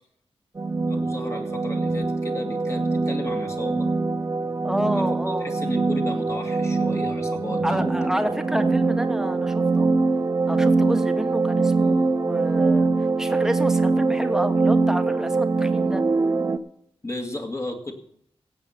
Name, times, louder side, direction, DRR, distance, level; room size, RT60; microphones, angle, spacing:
sound 1, 0.6-16.6, right 3 dB, 30° right, 0.7 m, -23 dB
voice 1, 0.9-3.9 4.9-7.9 17.0-17.9, left 2 dB, 30° left, 3 dB, 2.0 m, -34 dB
voice 2, 4.6-5.5 7.6-9.9 10.5-16.0, equal, 5° right, 8 dB, 1.1 m, -29 dB
16.5 x 8.2 x 5.8 m, 0.67 s
wide cardioid pair, 140°, 11 cm